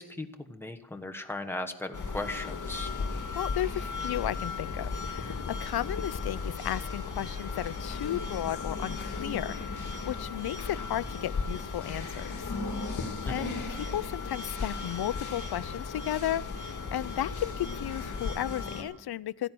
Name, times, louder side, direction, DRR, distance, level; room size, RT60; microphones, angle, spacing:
voice 1, 0.0-2.9 13.3-13.5, left 2 dB, 5° left, 4 dB, 1.2 m, -37 dB
sound 1, 1.9-18.8, left 4 dB, 50° left, 2.0 m, -35 dB
voice 2, 3.3-12.5 13.3-19.5, left 12 dB, 75° left, 19 dB, 0.5 m, -34 dB
15.0 x 10.5 x 7.6 m, 1.0 s
wide cardioid pair, 130°, 39 cm